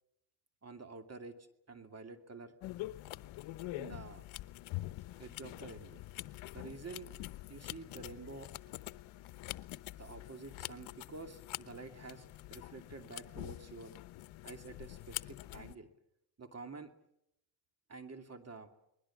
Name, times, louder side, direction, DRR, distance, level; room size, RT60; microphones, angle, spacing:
voice 1, 0.6-1.4 1.7-2.5 3.7-4.3 5.2-6.0 6.5-7.1 7.5-8.5 10.0-12.3 12.5-13.9 14.4-15.9 16.4-16.9 17.9-18.7, right 3 dB, 30° right, 7 dB, 2.6 m, -49 dB
sound 1, 2.6-15.7, left 17 dB, 70° left, 1.0 m, -45 dB
29.5 x 21.0 x 7.3 m, 0.78 s
supercardioid pair, 75°, 49 cm